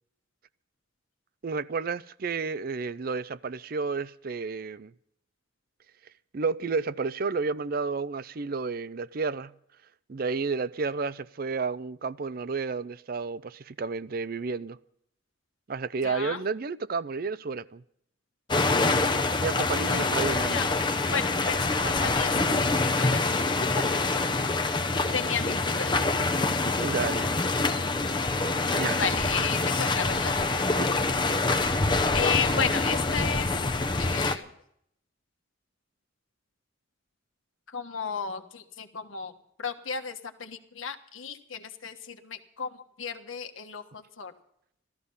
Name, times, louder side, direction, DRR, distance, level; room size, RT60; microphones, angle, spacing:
voice 1, 1.4-4.9 6.3-9.5 10.1-14.8 15.7-17.8 19.4-20.7 24.9-25.0 26.8-27.3 28.8-29.0 30.8-30.9, right 4 dB, 45° right, 0.5 m, -31 dB
voice 2, 16.0-16.4 19.9-20.1 20.5-20.7 21.1-24.0 25.1-25.9 28.7-30.4 32.1-33.7 33.9-34.5 37.7-39.3 39.6-44.3, left 6 dB, 85° left, 1.3 m, -33 dB
sound 1, 18.5-34.4, left 3 dB, 25° left, 0.7 m, -26 dB
16.0 x 13.5 x 5.5 m
head